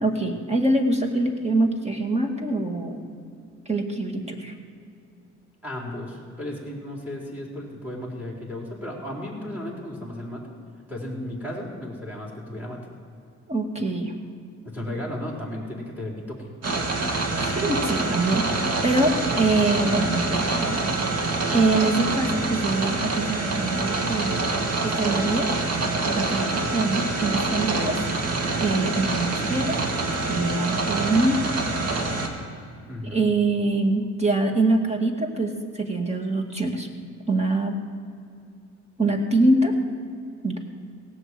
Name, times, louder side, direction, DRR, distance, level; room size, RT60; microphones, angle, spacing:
voice 1, 0.0-3.0 3.7-4.5 13.5-14.1 17.4-20.9 21.2-21.3 21.5-24.5 24.8-25.5 26.1-28.1 28.6-29.8 30.3-31.4 33.0-36.9 37.3-37.8 39.0-39.7 40.4-40.6, right 2 dB, 20° right, 4 dB, 2.1 m, -24 dB
voice 2, 5.6-10.5 10.9-12.8 14.6-16.5 32.8-33.3, left 1 dB, 5° right, -2 dB, 4.1 m, -34 dB
sound 1, 16.6-32.3, right 3 dB, 55° right, 2.1 m, -26 dB
17.5 x 8.1 x 7.7 m, 2.5 s
cardioid pair, 90°, 30 cm